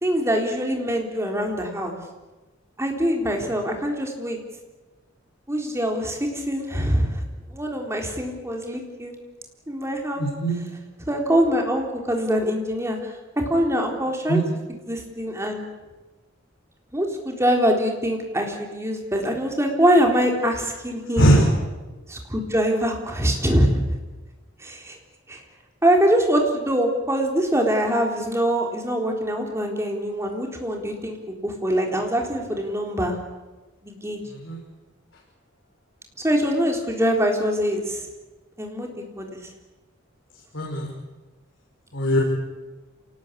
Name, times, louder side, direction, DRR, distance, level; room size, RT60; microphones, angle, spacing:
voice 1, 0.0-2.0 2.8-4.4 5.5-7.2 7.5-9.1 9.7-10.3 11.1-13.0 13.4-14.4 14.9-15.7 16.9-21.3 22.1-23.8 24.6-25.0 25.3-25.4 25.8-33.2 33.8-34.2 36.2-38.0 38.6-38.9 39.2-39.3, equal, 15° right, 2 dB, 3.8 m, -23 dB
voice 2, 10.2-10.6 14.3-14.4 21.2-21.5 34.3-34.6 40.5-40.9 41.9-42.2, right 1 dB, 75° left, -3 dB, 5.9 m, -20 dB
27.0 x 19.0 x 8.6 m, 1.2 s
head